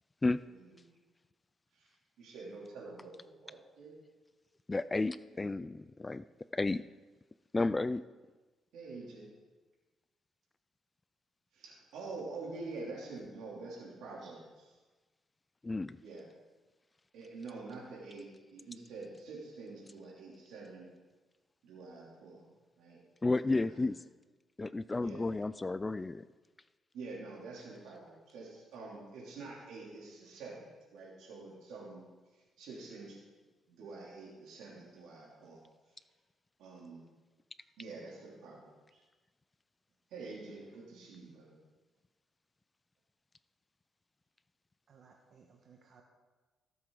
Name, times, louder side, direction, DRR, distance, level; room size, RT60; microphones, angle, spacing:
voice 1, 2.2-3.9 8.7-9.3 11.5-14.4 16.0-16.3 17.1-20.9 21.6-22.4 22.8-23.0 23.5-23.9 25.0-25.3 26.9-32.0 32.3-33.2 33.7-35.6 36.6-37.0 37.8-39.0 40.1-41.6, right 3 dB, 85° right, -4 dB, 3.0 m, -47 dB
voice 2, 4.7-6.2 6.5-6.8 7.5-8.0 15.6-16.0 23.2-24.0 24.6-26.3, left 3 dB, 20° left, 15 dB, 0.3 m, -32 dB
voice 3, 13.3-14.4 44.9-46.0, right 5 dB, 60° right, 1 dB, 1.2 m, -62 dB
17.5 x 7.6 x 3.9 m, 1.2 s
cardioid pair, 90°, 0 cm